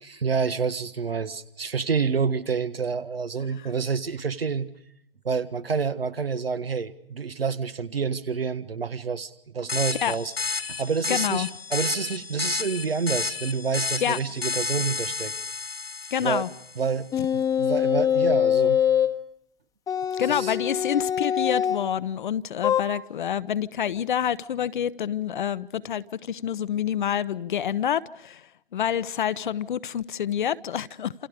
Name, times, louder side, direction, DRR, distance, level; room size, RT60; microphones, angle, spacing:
voice 1, 0.0-4.7 5.2-10.3 10.6-15.3 16.2-16.5 16.8-17.1 17.3-18.8 20.3-20.6, right 5 dB, 80° right, 1.6 m, -28 dB
sound 1, 9.7-16.8, left 5 dB, 80° left, 1.7 m, -31 dB
voice 2, 11.1-11.5 14.0-14.2 16.1-16.5 20.2-28.4 28.7-31.1, left 9 dB, 55° left, 0.9 m, -27 dB
sound 2, 17.1-19.2 19.9-21.9 22.6-22.8, left 9 dB, 10° left, 1.1 m, -23 dB
29.0 x 28.0 x 5.0 m
figure-of-eight pair, 125°, 29 cm